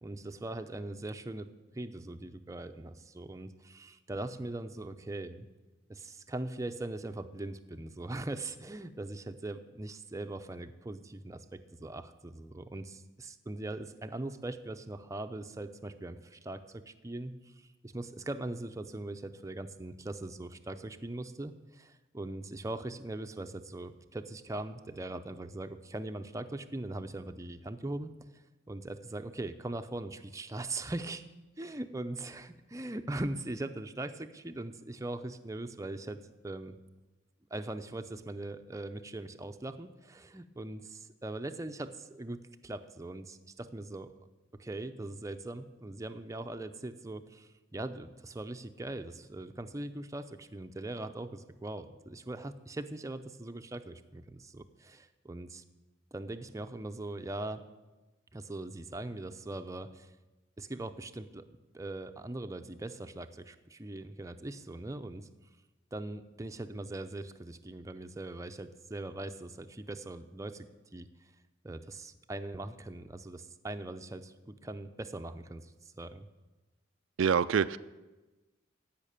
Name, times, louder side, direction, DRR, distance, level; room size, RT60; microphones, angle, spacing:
voice 1, 0.0-1.5 1.7-5.5 5.9-28.1 28.7-31.2 31.6-36.8 37.5-44.1 44.6-55.6 56.1-57.6 58.3-60.1 60.6-61.5 61.7-65.3 65.9-71.1 71.6-75.7 76.0-76.3, right 2 dB, 15° right, 0.6 m, -41 dB
voice 2, 77.2-77.8, right 7 dB, 85° right, 0.4 m, -26 dB
15.0 x 5.8 x 8.9 m
head